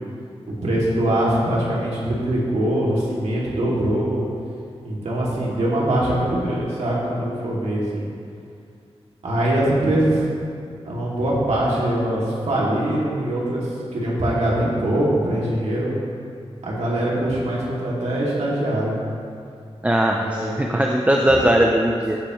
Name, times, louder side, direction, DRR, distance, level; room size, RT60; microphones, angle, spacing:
voice 1, 0.6-4.2 4.8-8.1 9.2-10.2 10.8-15.9 16.6-18.9 20.2-20.7 21.3-21.7, right 1 dB, 85° right, -6 dB, 2.6 m, -22 dB
voice 2, 19.8-22.2, right 1 dB, 15° right, 0 dB, 0.6 m, -19 dB
15.5 x 7.5 x 3.2 m, 2.4 s
wide cardioid pair, 105°, 11 cm